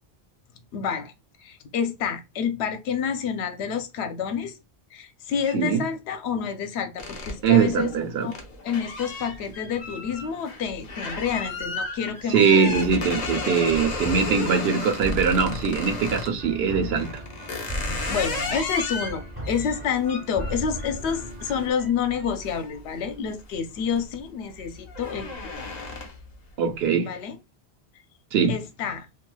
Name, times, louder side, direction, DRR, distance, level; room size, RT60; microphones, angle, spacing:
voice 1, 0.7-1.1 1.4-4.6 4.9-7.9 8.2-8.4 8.6-12.7 17.7-25.7 27.0-27.4 28.5-29.1, left 7 dB, 75° left, 0.8 m, -29 dB
voice 2, 5.5-5.8 7.4-8.3 12.3-17.2 26.6-27.1 28.3-28.5, right 6 dB, 70° right, 0.8 m, -22 dB
sound 1, 7.0-16.4 17.0-23.4 23.8-24.2 24.5-26.3, left 3 dB, 45° left, 0.7 m, -34 dB
sound 2, 12.5-21.7, equal, 20° right, 1.4 m, -36 dB
3.0 x 2.6 x 2.2 m
omnidirectional pair, 1.1 m